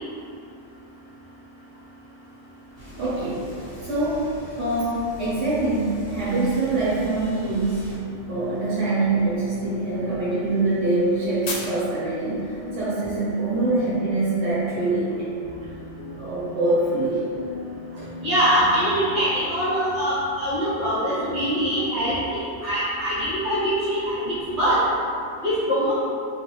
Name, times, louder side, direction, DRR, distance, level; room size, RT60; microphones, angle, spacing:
sound 1, 2.2-14.0, left 3 dB, 55° left, 0.4 m, -44 dB
sound 2, 2.7-8.0, equal, 15° left, 1.2 m, -41 dB
voice 1, 3.0-3.5 3.8-15.3 16.2-17.2, right 2 dB, 85° right, -9 dB, 1.0 m, -24 dB
sound 3, 6.9-22.1, left 1 dB, 90° left, 1.0 m, -41 dB
voice 2, 18.2-24.8 25.4-25.9, equal, 50° right, -12 dB, 1.6 m, -23 dB
3.2 x 2.5 x 3.0 m, 2.5 s
omnidirectional pair, 1.1 m